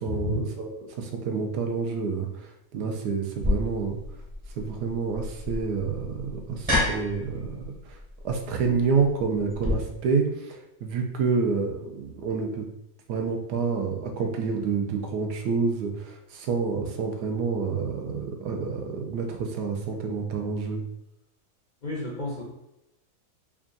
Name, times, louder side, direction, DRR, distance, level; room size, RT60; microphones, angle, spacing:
voice 1, 0.0-4.0 4.6-8.0 8.2-12.7 13.1-20.8, right 5 dB, 85° right, 3 dB, 1.2 m, -28 dB
sound 1, 3.4-9.7, left 1 dB, 25° right, 0.7 m, -31 dB
voice 2, 21.8-22.4, left 1 dB, 65° left, -4 dB, 0.4 m, -30 dB
3.5 x 2.3 x 3.8 m, 0.86 s
omnidirectional pair, 1.7 m